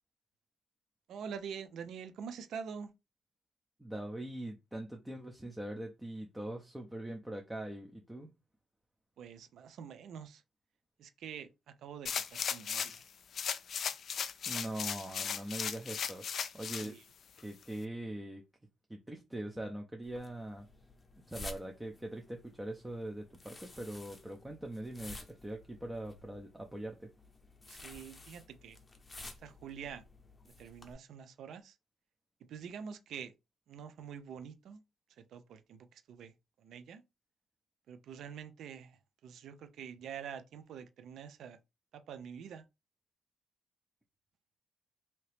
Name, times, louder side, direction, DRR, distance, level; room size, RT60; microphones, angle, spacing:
voice 1, 1.1-2.9 9.2-10.4 11.0-13.0 16.7-17.0 27.7-28.8 29.4-30.0 30.6-31.8 32.5-33.3 33.7-34.8 35.2-36.3 36.6-37.0 37.9-41.6 41.9-42.6, right 7 dB, 70° right, 0.5 m, -46 dB
voice 2, 3.8-8.3 14.5-16.2 16.5-16.9 17.4-18.4 18.9-20.7 21.3-27.1, right 1 dB, 10° right, 0.6 m, -42 dB
sound 1, 12.1-13.0 13.3-16.9 17.4-17.5, left 7 dB, 55° left, 0.4 m, -36 dB
sound 2, 20.0-30.9, left 2 dB, 25° left, 0.8 m, -52 dB
2.8 x 2.8 x 3.2 m
cardioid pair, 90°, 0 cm